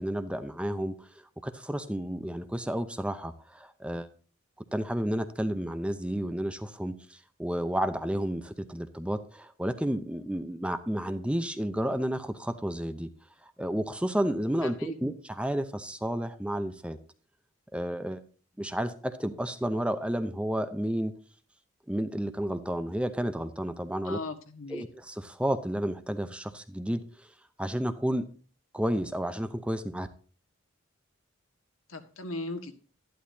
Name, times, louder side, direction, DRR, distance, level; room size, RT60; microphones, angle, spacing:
voice 1, 0.0-4.1 4.7-13.1 13.4-17.0 17.7-18.2 18.6-21.1 21.9-24.2 24.7-27.3 27.6-28.3 28.7-30.1, equal, 5° right, 10 dB, 0.7 m, -31 dB
voice 2, 14.6-15.0 24.0-24.9 31.9-32.7, left 2 dB, 75° left, 6 dB, 1.7 m, -37 dB
12.5 x 11.5 x 2.8 m, 0.40 s
head